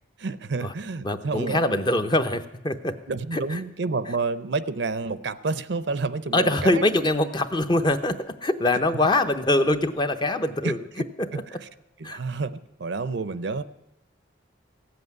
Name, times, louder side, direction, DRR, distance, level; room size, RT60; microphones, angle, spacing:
voice 1, 0.2-1.6 3.1-6.9 10.6-10.7 11.3-11.7 12.0-13.6, right 3 dB, 60° right, 15 dB, 0.6 m, -29 dB
voice 2, 1.0-2.9 3.3-3.6 6.3-10.8 11.3-11.4 12.0-12.2, left 1 dB, 25° left, 8 dB, 0.7 m, -23 dB
15.5 x 7.9 x 9.5 m, 0.91 s
head